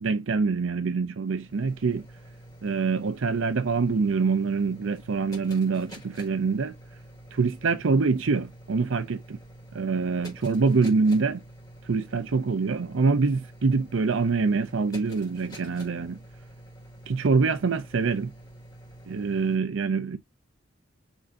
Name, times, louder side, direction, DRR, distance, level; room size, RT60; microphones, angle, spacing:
voice 1, 0.0-2.0 2.6-6.7 7.3-9.4 9.7-11.4 11.8-16.2 17.1-18.3 19.1-20.2, right 4 dB, 90° right, 0.6 m, -25 dB
sound 1, 1.1-19.6, equal, 20° left, 4.7 m, -48 dB
6.3 x 6.3 x 2.6 m
head